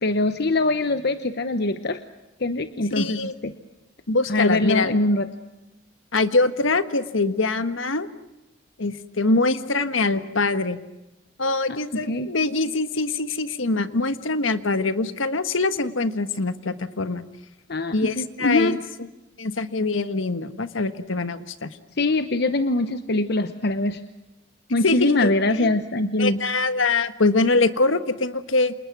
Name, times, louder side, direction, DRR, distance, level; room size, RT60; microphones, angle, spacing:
voice 1, 0.0-2.0 2.4-3.5 4.3-5.3 11.7-12.3 17.7-18.8 22.0-24.0 24.7-26.4, left 2 dB, 55° left, 10 dB, 1.0 m, -23 dB
voice 2, 2.9-3.3 4.1-5.0 6.1-8.1 8.8-10.8 11.4-17.2 17.9-18.8 19.4-21.7 24.8-25.8 26.2-28.7, left 3 dB, 90° left, 11 dB, 1.5 m, -23 dB
30.0 x 27.5 x 6.1 m, 0.95 s
head